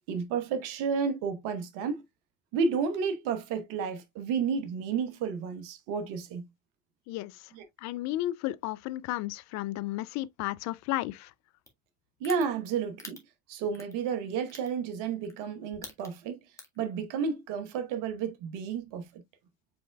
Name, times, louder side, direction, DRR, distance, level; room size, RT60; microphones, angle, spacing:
voice 1, 0.1-2.0 2.5-6.5 7.5-7.6 12.2-13.2 13.5-16.4 16.8-19.2, right 6 dB, 70° right, 1.2 m, -31 dB
voice 2, 7.1-7.5 7.8-11.3, left 16 dB, 55° left, 0.4 m, -33 dB
sound 1, 11.7-11.8 12.2-12.4 13.0-13.2 13.7-13.9 14.5-14.7 15.2-15.4 15.7-16.2 16.6-16.8, left 2 dB, 10° left, 1.6 m, -43 dB
5.2 x 4.4 x 2.2 m
hypercardioid pair, 75°, 33 cm